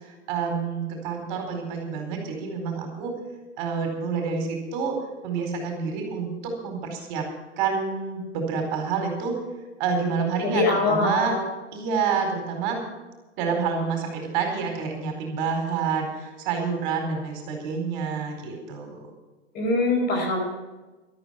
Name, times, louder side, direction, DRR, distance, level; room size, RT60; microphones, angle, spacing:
voice 1, 0.3-3.1 3.6-4.9 5.2-7.3 7.6-9.3 9.8-11.3 11.7-12.8 13.4-19.0, right 5 dB, 40° right, 3 dB, 4.5 m, -28 dB
voice 2, 10.4-11.4 19.5-20.4, left 3 dB, 25° left, 2 dB, 4.7 m, -23 dB
13.0 x 13.0 x 5.8 m, 1.2 s
hypercardioid pair, 120°, 35 cm